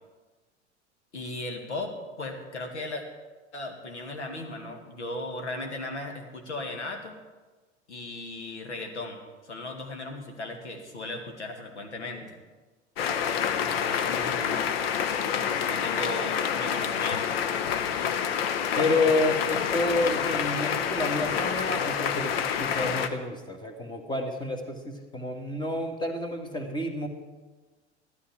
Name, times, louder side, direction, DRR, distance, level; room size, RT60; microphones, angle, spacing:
voice 1, 1.1-3.0 3.5-7.2 7.9-12.4 13.5-14.7 15.6-17.4, left 2 dB, 75° left, 3 dB, 2.0 m, -37 dB
sound 1, 13.0-23.1, left 8 dB, 55° left, 0.9 m, -28 dB
voice 2, 18.8-27.1, left 2 dB, 10° left, 4 dB, 1.8 m, -29 dB
14.0 x 12.5 x 4.9 m, 1.3 s
figure-of-eight pair, 85°, 35 cm